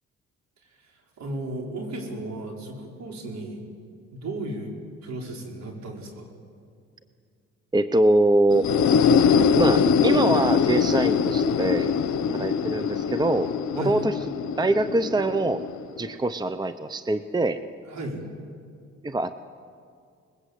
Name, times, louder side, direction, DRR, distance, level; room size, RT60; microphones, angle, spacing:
voice 1, 0.7-3.6 4.1-4.7 5.0-6.3 13.7-14.0 17.8-18.2, right 1 dB, 65° right, 1 dB, 5.4 m, -35 dB
voice 2, 7.7-8.7 9.6-11.9 12.3-14.1 14.6-15.6 16.0-17.6 19.0-19.3, right 2 dB, 15° right, 12 dB, 0.8 m, -23 dB
sound 1, 8.5-16.2, left 6 dB, 70° left, 1.0 m, -23 dB
28.0 x 21.0 x 8.4 m, 2.3 s
cardioid pair, 90°, 30 cm